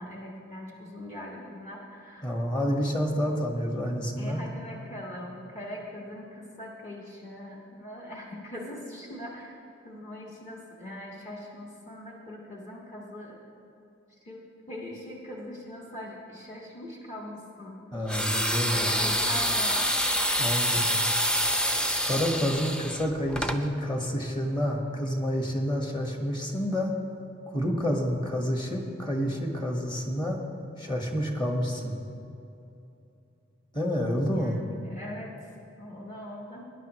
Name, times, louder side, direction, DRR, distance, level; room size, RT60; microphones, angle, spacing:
voice 1, 0.0-2.3 4.2-9.5 9.8-13.4 14.2-14.4 14.7-17.8 18.5-20.0 20.7-20.9 34.2-35.3 35.8-36.6, left 1 dB, 40° left, -3 dB, 1.7 m, -41 dB
voice 2, 2.2-4.5 17.9-19.1 20.4-20.9 22.0-26.9 27.5-30.4 30.8-32.0 33.7-34.6, equal, 25° left, 1 dB, 1.3 m, -29 dB
sound 1, 18.1-23.6, equal, 5° left, 0.5 m, -27 dB
20.5 x 10.5 x 3.1 m, 2.7 s
head